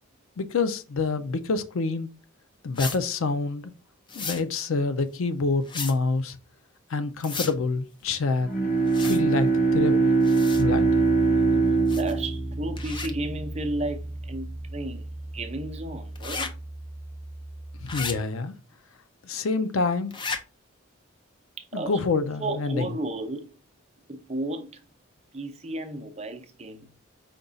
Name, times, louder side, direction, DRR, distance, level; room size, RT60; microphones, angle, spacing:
voice 1, 0.4-2.1 2.6-3.7 4.2-6.4 6.9-8.5 9.0-10.0 10.6-10.9 17.8-18.5 19.2-20.1 21.7-22.9, left 4 dB, 75° left, 0.5 m, -27 dB
sound 1, 2.7-3.0 4.1-4.4 5.7-5.9 7.2-7.5 8.9-9.2 10.2-10.6 11.9-12.2 12.8-13.1 16.1-16.5 17.9-18.1 20.1-20.4, left 4 dB, 20° left, 0.4 m, -33 dB
Bowed string instrument, 8.4-13.5, right 4 dB, 40° left, 1.2 m, -22 dB
Piano, 10.5-18.2, right 1 dB, 5° left, 0.9 m, -36 dB
voice 2, 11.2-16.5 21.6-22.0 22.4-23.5 24.1-24.8 25.3-27.0, right 2 dB, 30° right, 0.6 m, -34 dB
5.1 x 2.3 x 3.9 m
head